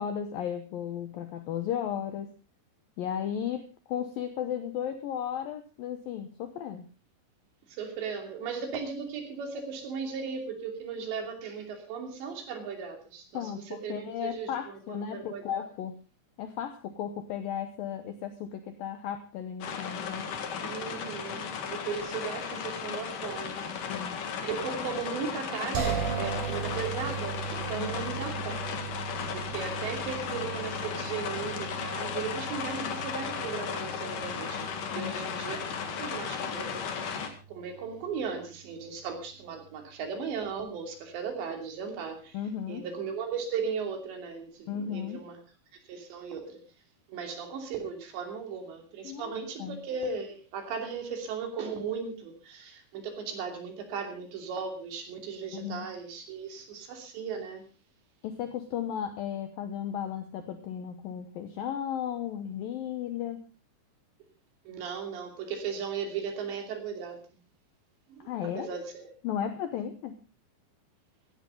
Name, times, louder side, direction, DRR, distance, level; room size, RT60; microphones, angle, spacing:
voice 1, 0.0-2.3 3.0-6.8 13.3-16.0 16.4-20.3 23.9-24.2 27.8-28.1 34.9-35.1 42.3-42.9 44.7-45.2 49.0-49.3 49.6-49.8 55.5-55.9 58.2-63.4 68.3-68.8 69.2-70.2, left 9 dB, 70° left, 9 dB, 2.3 m, -35 dB
voice 2, 7.7-15.6 20.6-23.6 24.4-28.8 29.3-42.4 42.7-45.4 45.9-46.6 47.1-57.7 64.7-67.2 68.1-69.1, right 6 dB, 75° right, 4 dB, 5.1 m, -37 dB
sound 1, 19.6-37.3, left 7 dB, 55° left, 3.0 m, -35 dB
sound 2, 25.7-38.8, right 7 dB, 55° right, 4.7 m, -39 dB
16.5 x 16.0 x 3.8 m, 0.32 s
omnidirectional pair, 5.2 m